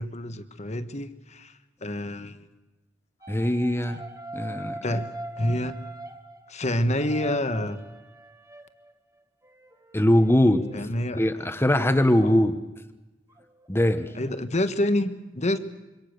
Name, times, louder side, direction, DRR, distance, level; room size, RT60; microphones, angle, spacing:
voice 1, 0.0-2.4 4.8-5.1 5.4-5.7 6.5-7.8 10.7-11.2 12.2-12.4 14.1-15.6, left 1 dB, 35° left, 11 dB, 1.5 m, -27 dB
sound 1, 3.2-8.9 9.4-11.8 13.3-14.3, right 1 dB, 20° right, 1.6 m, -42 dB
voice 2, 3.3-4.0 4.3-5.0 9.9-10.6 11.1-12.6 13.7-14.1, left 1 dB, 15° left, 9 dB, 1.2 m, -21 dB
26.5 x 24.5 x 6.8 m, 1.0 s
head